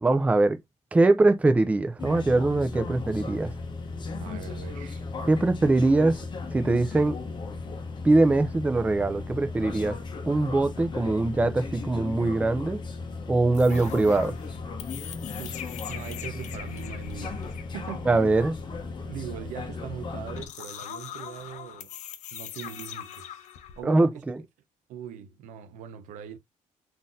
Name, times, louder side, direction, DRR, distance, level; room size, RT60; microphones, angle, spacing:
voice 1, 0.0-0.6 0.9-3.5 5.3-6.2 6.5-7.2 8.0-10.0 10.3-12.8 13.3-14.3 18.1-18.6 23.8-24.4, right 2 dB, 10° right, 0.4 m, -22 dB
sound 1, 2.0-20.5, left 4 dB, 35° left, 0.8 m, -36 dB
voice 2, 4.1-5.0 15.4-18.1 19.1-21.9 22.3-23.4 23.8-24.2 24.9-26.4, right 9 dB, 90° right, 0.6 m, -41 dB
sound 2, 13.5-23.8, left 9 dB, 70° left, 0.5 m, -42 dB
3.8 x 2.7 x 2.4 m
cardioid pair, 125°, 13 cm